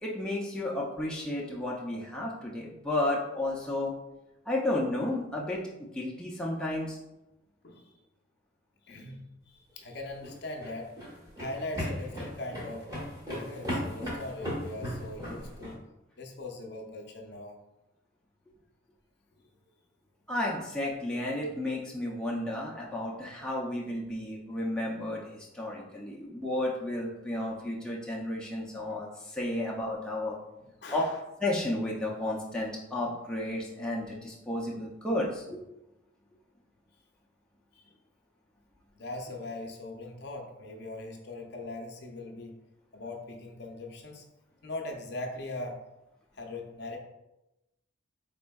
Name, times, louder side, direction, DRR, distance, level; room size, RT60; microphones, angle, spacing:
voice 1, 0.0-3.9 4.5-7.0 20.3-30.4 30.9-31.1 31.4-35.6, left 1 dB, 5° left, -4 dB, 0.4 m, -32 dB
voice 2, 7.6-8.0 8.9-9.2 9.5-10.9 11.4-12.9 13.2-15.8 16.2-17.5 30.8-31.2 37.7-37.8 39.0-42.5 42.9-44.2 44.6-45.8 46.3-47.0, left 2 dB, 55° left, 2 dB, 0.5 m, -40 dB
sound 1, 10.1-15.7, equal, 20° right, 1.1 m, -36 dB
4.1 x 3.5 x 2.2 m, 0.95 s
head